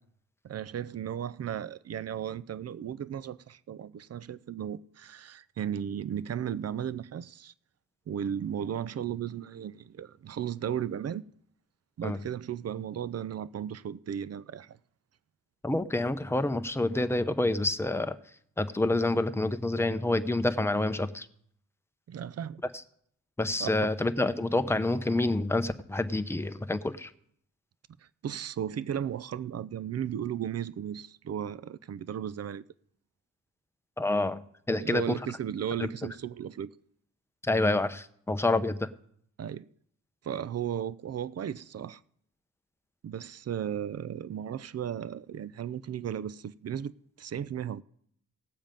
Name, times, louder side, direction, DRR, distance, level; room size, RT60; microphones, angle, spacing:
voice 1, 0.4-7.5 8.1-11.2 12.0-14.8 22.1-22.6 23.6-23.7 28.2-32.6 34.7-36.7 39.4-39.7 40.2-42.0 43.0-47.8, right 9 dB, 45° right, 0.6 m, -35 dB
voice 2, 15.6-18.2 18.6-21.3 23.4-27.1 34.0-35.2 35.8-35.9 37.4-38.9, left 2 dB, 5° left, 0.8 m, -28 dB
18.0 x 7.3 x 5.3 m
cardioid pair, 75°, 34 cm